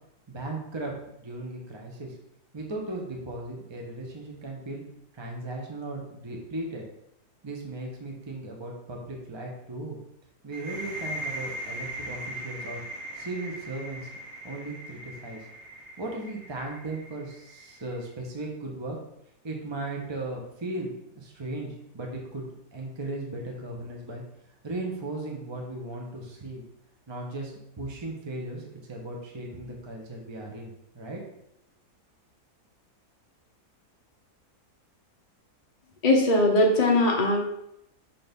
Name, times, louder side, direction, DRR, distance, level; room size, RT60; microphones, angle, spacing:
voice 1, 0.3-0.9 1.2-2.2 2.5-4.8 5.1-6.8 7.4-10.0 10.4-12.8 13.1-14.1 14.4-15.4 16.0-19.0 19.4-22.4 22.7-24.2 24.6-26.6 27.1-28.6 28.9-31.2, right 2 dB, 20° right, 0 dB, 1.0 m, -36 dB
sound 1, 10.5-18.1, right 1 dB, 45° right, 1.8 m, -39 dB
voice 2, 36.0-37.4, left 2 dB, 35° left, -1 dB, 0.6 m, -20 dB
6.7 x 3.7 x 5.3 m, 0.79 s
omnidirectional pair, 1.7 m